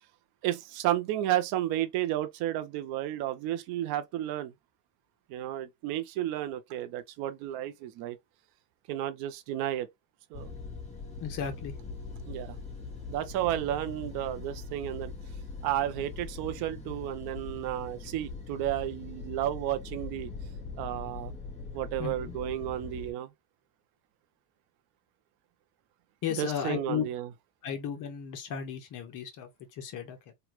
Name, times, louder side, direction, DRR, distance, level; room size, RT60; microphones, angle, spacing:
voice 1, 0.4-4.5 5.3-8.2 8.9-9.9 10.3-10.5 12.3-12.6 13.1-15.1 15.6-20.3 20.8-21.3 21.7-23.3 26.4-27.3, right 13 dB, 50° right, 0.7 m, -32 dB
sound 1, 10.3-23.1, left 4 dB, 15° left, 1.3 m, -42 dB
voice 2, 11.2-11.7 22.0-22.4 26.2-27.0 27.6-30.3, left 8 dB, 40° left, 1.0 m, -35 dB
3.3 x 2.4 x 3.0 m
supercardioid pair, 135°, 49 cm